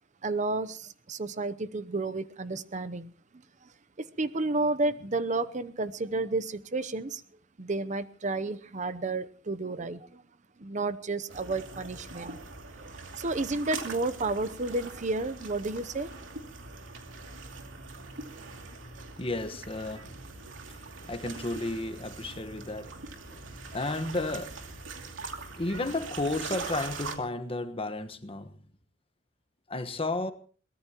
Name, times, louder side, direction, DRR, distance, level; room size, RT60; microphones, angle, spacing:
voice 1, 0.2-3.1 3.6-3.7 4.2-7.2 7.6-10.2 10.6-12.4 12.8-16.1, right 2 dB, 40° right, 0.7 m, -31 dB
sound 1, 11.3-27.2, right 3 dB, 90° right, 2.7 m, -42 dB
voice 2, 19.2-20.2 20.7-20.8 21.1-22.9 23.3-23.4 23.7-24.6 25.6-28.5 29.7-30.3, left 2 dB, 30° left, 1.3 m, -33 dB
23.0 x 19.0 x 3.0 m
head